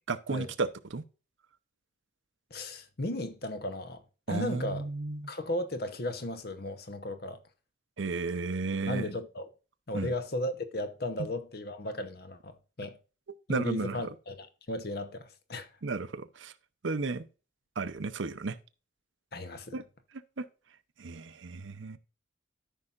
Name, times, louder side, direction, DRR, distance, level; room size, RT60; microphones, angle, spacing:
voice 1, 0.1-1.0 4.3-5.3 8.0-9.1 9.9-10.1 13.5-14.0 15.8-16.5 16.8-17.3 17.8-18.6 19.7-19.8 20.4-20.5 21.0-22.0, right 3 dB, 75° right, 0.7 m, -33 dB
voice 2, 2.5-4.0 4.3-4.9 5.3-7.4 8.9-9.5 9.9-13.0 13.5-15.7 19.3-19.8, left 1 dB, 50° left, 1.0 m, -35 dB
13.5 x 5.6 x 2.5 m
head